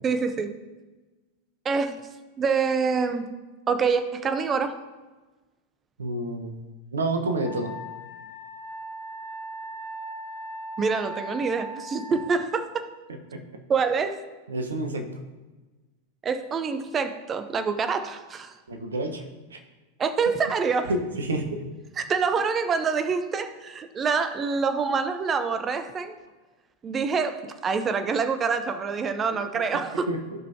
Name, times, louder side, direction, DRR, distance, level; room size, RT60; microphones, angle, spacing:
voice 1, 0.0-0.5 1.6-2.0 2.4-3.3 3.7-4.8 10.8-12.8 13.7-14.2 16.2-18.5 20.0-20.9 22.0-26.2 26.8-30.1, right 5 dB, 25° right, 9 dB, 0.7 m, -26 dB
voice 2, 6.0-6.6 6.9-7.7 13.3-13.4 14.5-15.2 18.7-19.2 19.5-19.6 20.9-21.6 29.5-29.6 30.1-30.2, right 2 dB, 70° right, 5 dB, 1.1 m, -29 dB
Wind instrument woodwind instrument, 7.4-12.3, right 1 dB, 60° left, 2.1 m, -38 dB
14.5 x 5.3 x 2.8 m, 1.2 s
figure-of-eight pair, 90°, 0 cm